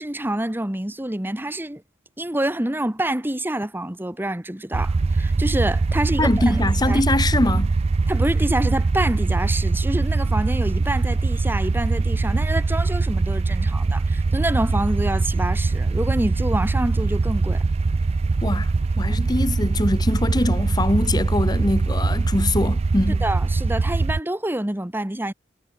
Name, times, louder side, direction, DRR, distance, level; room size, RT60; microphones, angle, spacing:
voice 1, 0.0-1.8 2.2-6.6 6.9-7.0 8.1-17.6 23.2-25.3, right 1 dB, 10° right, 1.1 m, -27 dB
sound 1, 4.7-24.2, right 3 dB, 30° right, 0.3 m, -22 dB
voice 2, 6.2-7.7 18.4-23.2, left 2 dB, 20° left, 0.9 m, -23 dB
head